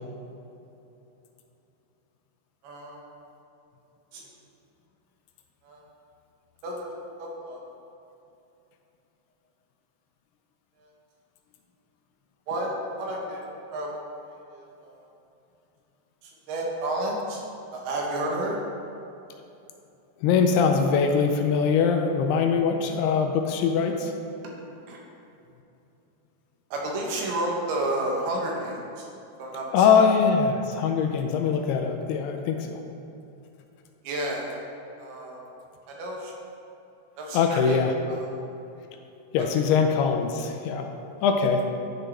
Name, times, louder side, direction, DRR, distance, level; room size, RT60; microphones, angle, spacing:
voice 1, 2.6-3.0 4.1-4.3 5.6-5.8 6.6-6.9 7.2-7.6 10.8-10.9 12.5-13.4 13.7-14.0 14.3-15.1 16.2-17.4 17.7-18.6 24.9-25.0 26.7-29.1 29.4-29.9 34.0-34.6 35.0-35.4 35.9-36.4 37.2-37.8 38.1-38.3 39.6-39.7, right 1 dB, 75° right, -2 dB, 3.0 m, -31 dB
voice 2, 20.2-24.1 29.7-32.8 37.3-37.9 39.3-40.9 41.2-41.6, left 6 dB, 80° left, 4 dB, 2.5 m, -22 dB
10.5 x 6.1 x 3.3 m, 2.8 s
omnidirectional pair, 4.8 m